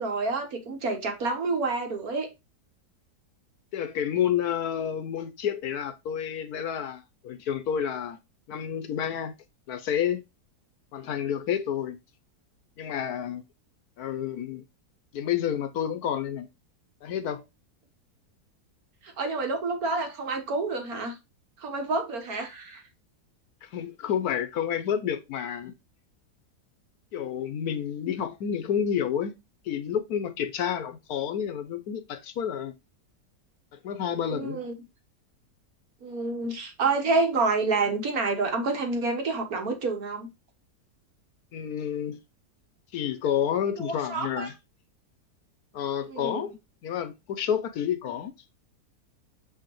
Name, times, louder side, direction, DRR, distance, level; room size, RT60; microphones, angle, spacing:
voice 1, 0.0-2.3 19.0-21.2 21.6-22.8 34.1-34.7 36.0-40.3 43.8-44.5 46.1-46.5, right 3 dB, 60° right, 1.6 m, -28 dB
voice 2, 3.7-8.2 8.5-9.3 9.7-10.2 10.9-12.0 12.8-13.4 14.0-14.6 15.1-16.5 17.0-17.4 23.6-25.7 27.1-29.3 29.6-32.7 33.7-34.6 41.5-42.2 42.9-44.5 45.7-46.5 46.8-48.3, left 9 dB, 70° left, 1.1 m, -29 dB
6.5 x 4.8 x 3.0 m
omnidirectional pair, 1.8 m